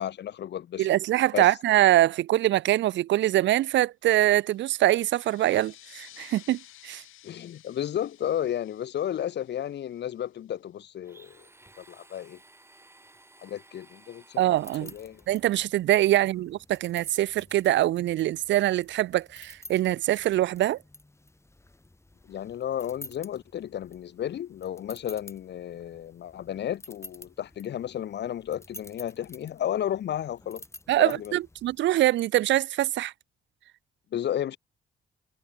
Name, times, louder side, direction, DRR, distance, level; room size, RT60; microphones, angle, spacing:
voice 1, 0.0-0.9 1.3-1.5 7.2-11.4 11.8-12.4 13.4-14.4 14.8-15.2 22.3-30.6 31.0-31.4 34.1-34.6, left 10 dB, 60° left, 1.1 m, -33 dB
voice 2, 0.8-7.0 14.4-14.9 15.3-20.8 30.9-33.1, right 14 dB, 65° right, 0.5 m, -24 dB
sound 1, 4.4-10.6, left 14 dB, 85° left, 5.9 m, -54 dB
Domestic sounds home sounds, 11.0-15.5, right 2 dB, 10° right, 5.7 m, -56 dB
sound 2, 14.5-31.8, left 2 dB, 15° left, 3.7 m, -51 dB
cardioid pair, 90°, 20 cm